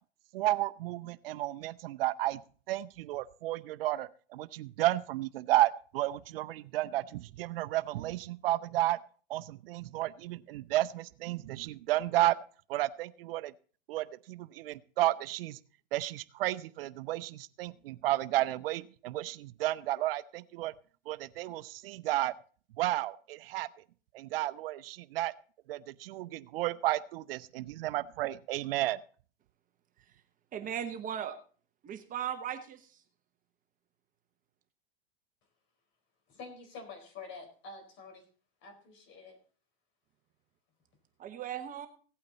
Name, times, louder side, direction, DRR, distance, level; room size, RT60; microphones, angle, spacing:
voice 1, 0.3-2.4 2.7-9.0 9.3-12.4 12.7-13.5 13.9-15.6 15.9-20.7 21.1-22.3 22.8-23.7 24.1-25.3 25.7-29.0, right 16 dB, 70° right, 16 dB, 0.6 m, -32 dB
voice 2, 30.5-31.4 31.8-32.9 41.2-41.9, right 9 dB, 25° right, 8 dB, 1.0 m, -37 dB
voice 3, 36.3-38.2 38.6-39.4, left 4 dB, 40° left, 5 dB, 4.3 m, -47 dB
16.5 x 8.7 x 4.0 m, 0.41 s
supercardioid pair, 125°, 30 cm